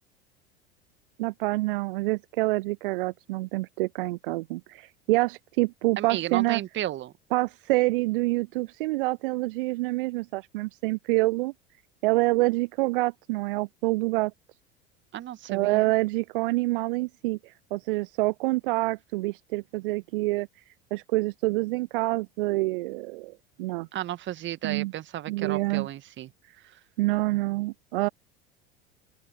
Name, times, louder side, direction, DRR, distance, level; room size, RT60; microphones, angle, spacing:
voice 1, 1.2-6.6 7.3-11.5 12.0-14.3 15.5-20.5 20.9-23.9 24.6-24.9 25.3-25.9 27.0-28.1, right 21 dB, 55° right, 0.7 m, -27 dB
voice 2, 6.0-7.1 15.1-15.9 23.9-26.3 26.7-26.8, right 13 dB, 35° right, 2.0 m, -33 dB
open air
figure-of-eight pair, 75°, 32 cm